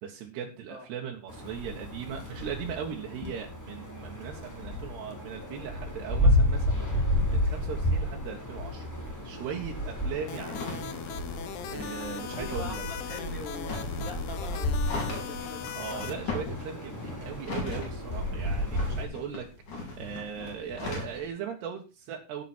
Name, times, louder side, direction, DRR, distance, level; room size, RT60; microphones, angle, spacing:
voice 1, 0.0-8.9 9.2-11.2 11.7-12.9 15.8-19.5 19.7-22.4, right 7 dB, 75° right, 1 dB, 3.6 m, -39 dB
sound 1, 1.3-19.0, left 1 dB, 5° left, 3.2 m, -31 dB
sound 2, 10.3-16.1, left 9 dB, 75° left, 3.0 m, -39 dB
sound 3, 10.4-21.3, left 2 dB, 45° left, 6.3 m, -39 dB
voice 2, 12.1-16.0, left 2 dB, 25° left, 3 dB, 2.1 m, -43 dB
16.5 x 8.1 x 4.4 m, 0.30 s
omnidirectional pair, 4.8 m